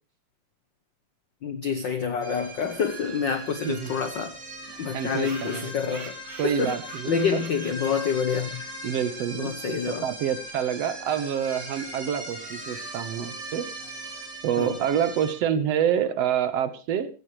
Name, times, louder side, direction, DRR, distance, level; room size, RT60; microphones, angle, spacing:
voice 1, 1.4-4.3 4.8-6.1 6.4-6.7 7.1-8.6 9.4-10.0 14.6-14.7, left 6 dB, 70° left, 9 dB, 1.1 m, -27 dB
sound 1, 2.2-15.3, right 1 dB, 25° right, 3.1 m, -39 dB
sound 2, 3.0-3.1 3.4-3.5 3.7-3.8 4.0-4.1 4.7-8.9, right 4 dB, 45° right, 2.9 m, -46 dB
voice 2, 4.9-5.7 6.4-7.4 8.8-13.7 14.4-17.1, right 9 dB, 65° right, 12 dB, 2.0 m, -27 dB
16.5 x 16.0 x 3.1 m, 0.33 s
omnidirectional pair, 3.4 m